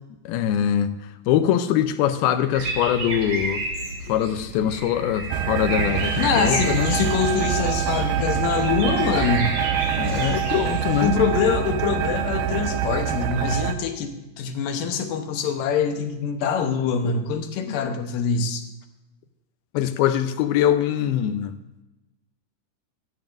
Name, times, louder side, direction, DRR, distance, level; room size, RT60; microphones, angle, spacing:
voice 1, 0.3-0.9 1.3-3.6 4.1-7.0 9.9-11.2 19.7-21.5, left 10 dB, 90° left, 10 dB, 2.6 m, -23 dB
sound 1, 2.5-11.1, right 2 dB, 50° right, 2.5 m, -31 dB
sound 2, 5.3-13.7, right 9 dB, 80° right, 2.4 m, -25 dB
voice 2, 6.2-9.5 11.0-18.6, left 6 dB, 70° left, 6 dB, 2.5 m, -24 dB
16.5 x 12.5 x 2.6 m, 1.0 s
omnidirectional pair, 4.3 m